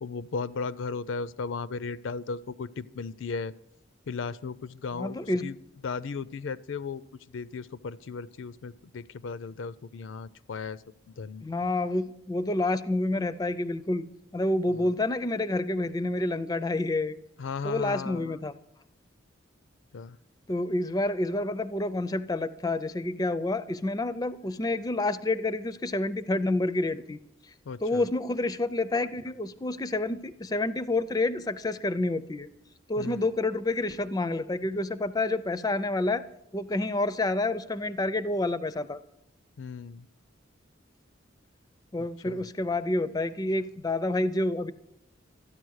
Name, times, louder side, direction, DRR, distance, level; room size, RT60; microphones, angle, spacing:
voice 1, 0.0-3.5 4.1-5.5 5.8-7.0 7.3-10.8 11.1-11.4 14.7-14.9 17.4-18.4 19.9-20.2 27.7-28.1 33.0-33.2 39.6-40.1 42.0-42.4, left 4 dB, 75° left, 18 dB, 0.4 m, -36 dB
voice 2, 4.9-5.5 11.4-14.1 14.3-17.2 17.6-18.5 20.5-27.2 27.8-32.5 32.9-36.2 36.5-39.0 41.9-44.7, left 2 dB, 20° left, 15 dB, 0.4 m, -28 dB
13.5 x 10.0 x 6.3 m, 0.79 s
head